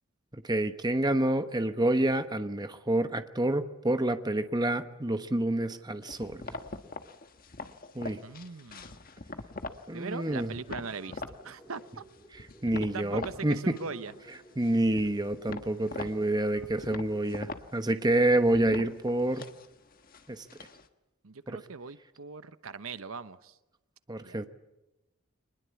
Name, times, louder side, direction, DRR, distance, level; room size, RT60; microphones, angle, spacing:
voice 1, 0.4-6.4 7.9-8.2 9.9-10.5 12.6-13.8 14.6-19.5 20.3-20.4 21.5-21.6 24.1-24.5, right 1 dB, 20° right, 9 dB, 1.0 m, -28 dB
sound 1, 6.1-9.9 10.2-11.4 11.8-13.4 13.7-14.3 14.6-20.9, left 3 dB, 40° left, 1.4 m, -43 dB
voice 2, 8.2-9.0 9.9-12.0 12.8-14.1 21.2-23.6 24.2-24.4, right 4 dB, 75° right, 13 dB, 1.0 m, -40 dB
sound 2, 10.8-17.4, right 1 dB, 5° left, 3.0 m, -55 dB
24.0 x 20.5 x 8.4 m, 0.96 s
head